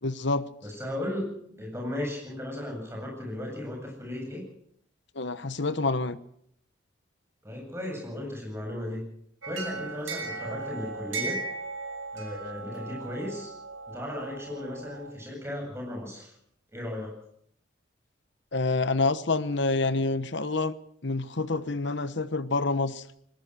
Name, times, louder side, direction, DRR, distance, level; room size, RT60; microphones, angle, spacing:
voice 1, 0.0-0.5 5.1-6.2 18.5-20.8 21.0-23.0, left 3 dB, 60° left, 1.1 m, -27 dB
voice 2, 0.6-4.4 7.4-9.1 9.4-11.4 12.1-13.5 13.9-16.3 16.7-17.1, left 1 dB, 15° right, 8.0 m, -36 dB
sound 1, 9.4-15.1, right 3 dB, 80° right, 6.6 m, -37 dB
21.0 x 19.5 x 6.3 m
head